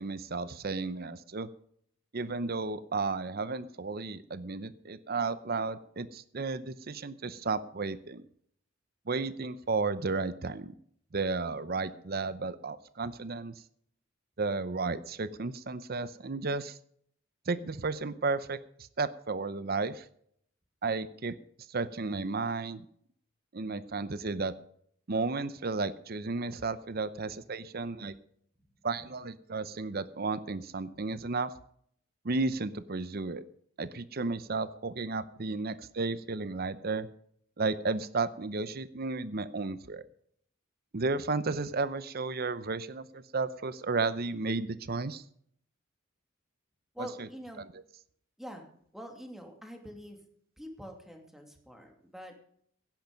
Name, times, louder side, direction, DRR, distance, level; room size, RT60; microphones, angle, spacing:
voice 1, 0.0-1.5 2.1-8.2 9.1-10.7 11.1-13.5 14.4-16.8 17.5-18.6 19.0-20.1 20.8-21.4 21.7-22.8 23.5-24.5 25.1-28.1 28.8-31.5 32.2-33.4 33.8-37.1 37.6-40.0 40.9-45.2 47.0-47.3, right 3 dB, 50° right, 14 dB, 0.7 m, -33 dB
voice 2, 46.9-47.7 48.4-48.7 48.9-50.2 50.6-52.4, equal, ahead, 3 dB, 2.5 m, -45 dB
16.5 x 10.5 x 5.3 m, 0.65 s
head